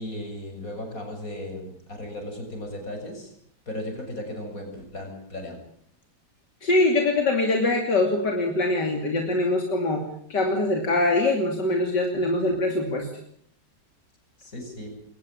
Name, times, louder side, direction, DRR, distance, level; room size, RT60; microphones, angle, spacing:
voice 1, 0.0-3.3 3.7-5.6 14.4-14.9, left 1 dB, 50° left, 3 dB, 7.4 m, -36 dB
voice 2, 6.6-10.0 10.3-13.1, left 2 dB, 75° left, 2 dB, 3.4 m, -23 dB
23.0 x 18.0 x 9.0 m, 0.66 s
omnidirectional pair, 1.9 m